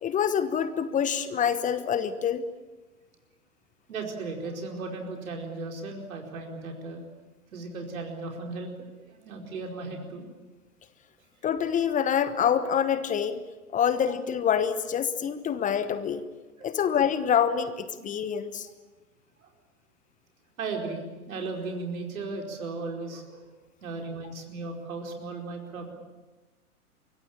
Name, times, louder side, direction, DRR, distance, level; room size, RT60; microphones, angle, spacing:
voice 1, 0.0-2.4 11.4-13.4 13.7-16.2 16.6-18.7, left 8 dB, 15° left, 12 dB, 1.1 m, -26 dB
voice 2, 3.9-7.0 7.5-10.2 16.6-16.7 18.0-18.1 19.4-19.5 20.6-21.0 21.3-23.5 23.8-25.9, right 3 dB, 70° right, 1 dB, 4.8 m, -36 dB
24.5 x 22.0 x 8.7 m, 1.2 s
figure-of-eight pair, 110°, 44 cm